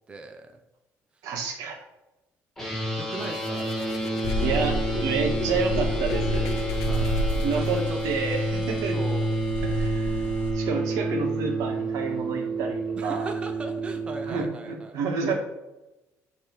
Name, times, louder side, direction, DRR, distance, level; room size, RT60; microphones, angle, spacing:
voice 1, 0.1-0.6 3.0-4.7 6.8-8.0 8.9-9.4 13.0-15.0, right 3 dB, 20° right, 5 dB, 0.5 m, -39 dB
voice 2, 1.2-1.8 4.4-6.5 7.3-9.0 9.6-13.3 14.3-15.4, right 4 dB, 80° right, 1 dB, 1.5 m, -29 dB
sound 1, 2.6-14.4, right 2 dB, 5° left, 1.8 m, -29 dB
sound 2, 3.2-8.1, left 7 dB, 80° left, 0.6 m, -38 dB
sound 3, 4.2-10.5, right 1 dB, 40° left, 0.9 m, -31 dB
7.5 x 3.3 x 4.6 m, 0.99 s
cardioid pair, 175°, 6 cm